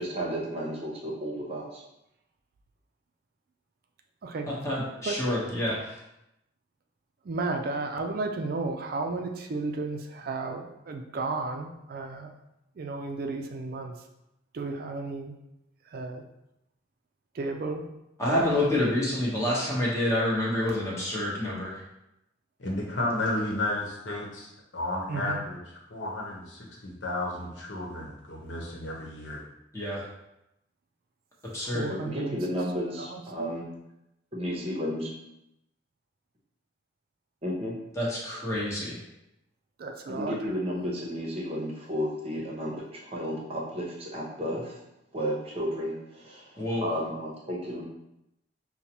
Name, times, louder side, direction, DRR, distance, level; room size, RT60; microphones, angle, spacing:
voice 1, 0.0-1.8 31.9-33.7 34.3-35.1 37.4-37.8 40.1-44.8 45.1-47.8, equal, 35° right, -3 dB, 0.8 m, -33 dB
voice 2, 4.5-6.0 18.2-21.8 29.7-30.1 31.5-31.9 37.9-39.0 46.6-46.9, left 1 dB, 15° left, -6 dB, 1.0 m, -28 dB
voice 3, 7.2-12.3 12.8-14.0 14.5-15.4 15.9-16.2 17.3-17.8 18.3-18.9 25.1-25.4 31.7-32.5 33.0-33.6 39.8-40.5, right 3 dB, 50° right, 4 dB, 0.4 m, -33 dB
voice 4, 22.6-29.4, left 1 dB, 80° left, -2 dB, 1.0 m, -33 dB
5.3 x 2.2 x 2.9 m, 0.87 s
head